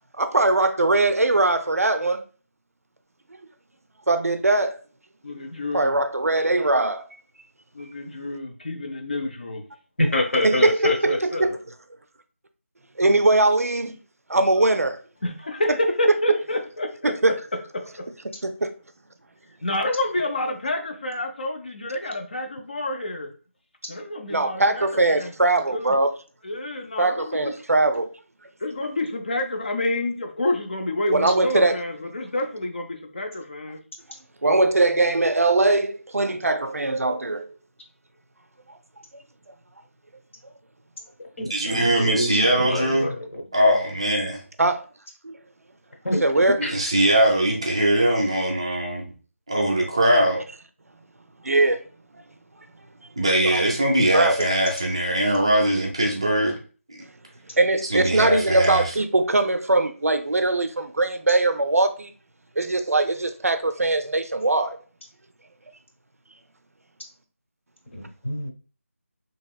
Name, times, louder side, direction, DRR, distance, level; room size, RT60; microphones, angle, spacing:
voice 1, 0.2-2.2 4.1-4.8 5.7-7.1 10.4-11.5 13.0-13.9 14.3-15.0 15.7-15.8 16.1-16.4 17.0-17.3 18.4-18.7 24.3-26.2 27.0-28.1 31.1-31.8 34.4-37.5 44.6-44.8 45.2-45.4 46.2-46.6 51.4-51.8 52.1-52.2 53.4-53.6 54.1-54.5 57.6-62.1 62.6-64.8, right 2 dB, 85° right, 0.4 m, -21 dB
voice 2, 5.2-5.9 7.7-9.6 15.2-17.1 19.6-23.3 23.9-25.9 26.4-27.5 28.6-33.8, left 1 dB, 40° left, 0.4 m, -28 dB
voice 3, 10.0-11.5 41.4-43.4 46.0-46.7 67.9-68.5, left 1 dB, 60° left, 0.9 m, -26 dB
voice 4, 41.5-43.1 43.5-44.4 46.6-49.1 49.5-50.4 53.2-56.6 56.9-57.0 57.9-58.9, right 1 dB, 25° right, 0.4 m, -21 dB
2.9 x 2.8 x 2.2 m
figure-of-eight pair, 165°, 8 cm